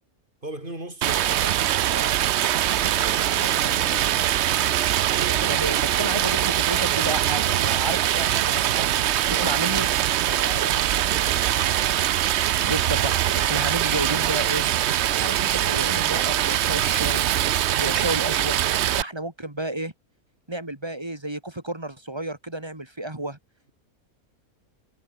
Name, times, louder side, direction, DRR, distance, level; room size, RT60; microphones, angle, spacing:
voice 1, 0.4-2.2 2.8-4.2 9.2-9.6 10.2-12.0, right 1 dB, 35° right, 7.5 m, -38 dB
Stream, 1.0-19.0, right 12 dB, 60° right, 0.8 m, -23 dB
sound 1, 3.2-18.7, left 3 dB, 60° left, 4.5 m, -47 dB
voice 2, 5.2-8.9 9.3-9.9 12.6-14.7 15.2-17.3 17.8-18.6 18.9-19.9 20.5-23.4, right 1 dB, 15° right, 2.9 m, -31 dB
omnidirectional pair, 1.5 m